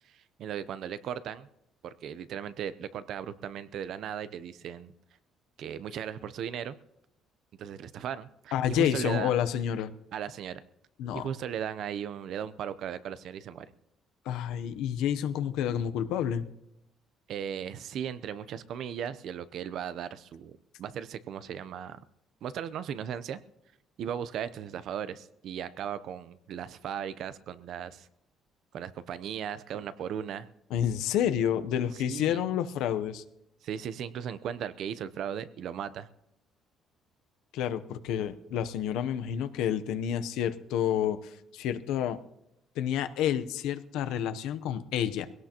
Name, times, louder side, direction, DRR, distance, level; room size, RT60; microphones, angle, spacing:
voice 1, 0.0-1.5 1.8-4.9 5.6-6.8 7.6-9.3 10.1-10.6 11.1-13.7 17.3-22.0 22.4-23.4 24.0-28.1 28.7-30.5 31.9-32.4 33.6-36.1, right 8 dB, 60° right, 14 dB, 0.7 m, -37 dB
voice 2, 8.5-9.9 11.0-11.3 14.3-16.5 30.7-33.2 37.5-42.2 42.8-45.3, left 10 dB, 90° left, 10 dB, 0.8 m, -29 dB
21.5 x 17.0 x 2.9 m, 0.84 s
cardioid pair, 135°, 0 cm